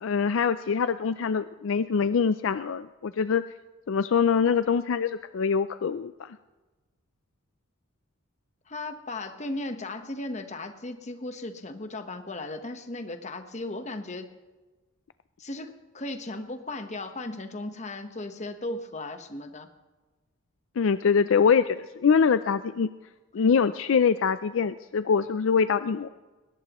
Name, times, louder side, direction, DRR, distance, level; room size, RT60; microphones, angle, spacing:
voice 1, 0.0-3.4 3.9-6.4 20.8-22.9 23.3-26.1, left 6 dB, 65° left, 12 dB, 0.4 m, -24 dB
voice 2, 8.7-14.3 15.4-19.7, left 2 dB, 35° left, 7 dB, 1.2 m, -36 dB
21.5 x 18.5 x 3.0 m, 1.2 s
head